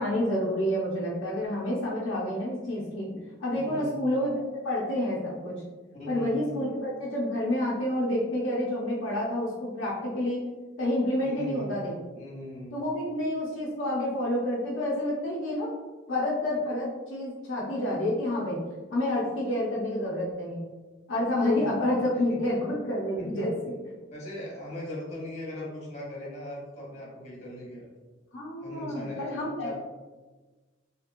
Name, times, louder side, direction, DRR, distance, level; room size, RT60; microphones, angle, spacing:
voice 1, 0.0-4.4 4.6-5.6 6.1-10.4 10.8-11.9 12.7-15.7 16.1-18.6 18.9-20.6 21.1-23.7 28.3-29.8, left 1 dB, 75° left, -5 dB, 0.6 m, -29 dB
voice 2, 3.5-4.0 6.0-6.4 11.2-11.8 12.1-12.8 21.5-21.8 22.3-22.4 23.2-23.4 24.1-27.9 28.6-29.3 29.6-29.8, left 1 dB, 35° left, -5 dB, 1.1 m, -39 dB
2.8 x 2.8 x 2.5 m, 1.3 s
head